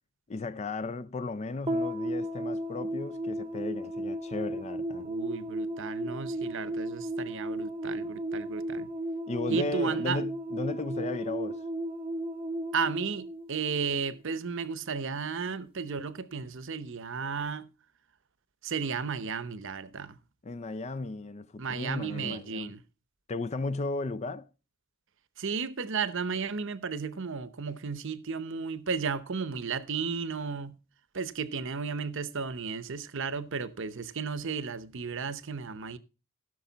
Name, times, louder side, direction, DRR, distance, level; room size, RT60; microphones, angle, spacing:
voice 1, 0.3-5.1 9.3-11.6 20.4-22.7 23.3-24.5, left 3 dB, 30° left, 0.4 m, -35 dB
sound 1, 1.7-14.2, right 1 dB, 25° right, 0.8 m, -34 dB
voice 2, 5.0-8.9 9.5-10.2 12.7-17.7 18.6-20.2 21.6-22.8 25.4-30.8 31.1-36.0, right 5 dB, 55° right, 0.8 m, -34 dB
16.0 x 6.5 x 4.0 m
head